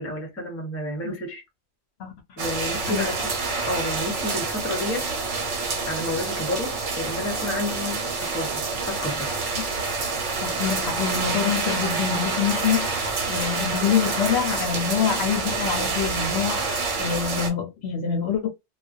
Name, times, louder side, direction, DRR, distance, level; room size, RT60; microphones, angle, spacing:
voice 1, 0.0-1.4 2.4-3.3 3.7-5.1 5.9-9.4, left 1 dB, 15° left, 0.6 m, -30 dB
voice 2, 2.0-2.4 2.9-3.1 10.4-18.5, left 7 dB, 65° left, 0.8 m, -26 dB
sound 1, 2.4-17.5, right 4 dB, 70° right, 1.1 m, -27 dB
2.4 x 2.2 x 2.4 m
omnidirectional pair, 1.3 m